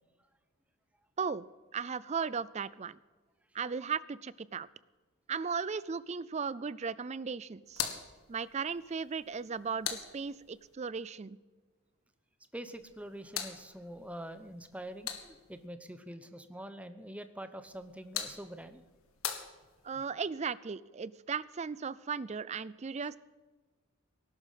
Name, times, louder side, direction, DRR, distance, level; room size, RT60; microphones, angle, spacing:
voice 1, 1.7-3.0 3.5-4.7 5.3-7.8 8.3-11.4 19.8-23.2, right 5 dB, 30° right, 19 dB, 0.4 m, -36 dB
sound 1, 7.7-10.7 12.7-15.7 17.7-20.1, left 8 dB, 70° left, 1.7 m, -43 dB
voice 2, 12.5-18.8, right 1 dB, 5° right, 10 dB, 0.8 m, -45 dB
18.5 x 11.5 x 5.7 m, 1.3 s
head